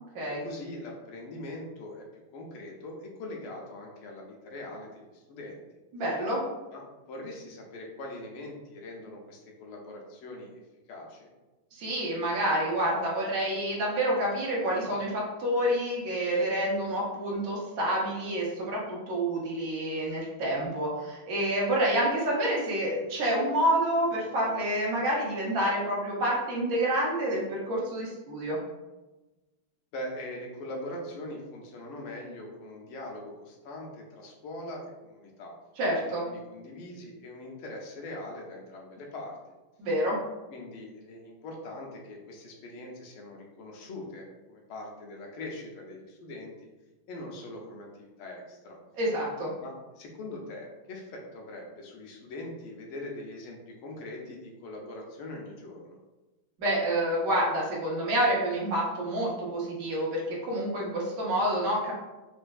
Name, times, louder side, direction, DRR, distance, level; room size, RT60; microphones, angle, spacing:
voice 1, 0.3-5.6 6.7-10.5 10.9-11.3 29.9-35.5 35.9-39.4 40.5-46.7 47.1-48.8 49.6-56.0, left 1 dB, 85° left, 0 dB, 1.6 m, -42 dB
voice 2, 5.9-6.4 11.7-28.6 35.8-36.3 39.8-40.2 49.0-49.5 56.6-61.9, right 1 dB, 55° right, -4 dB, 1.0 m, -28 dB
4.2 x 2.5 x 2.3 m, 1.1 s
omnidirectional pair, 2.3 m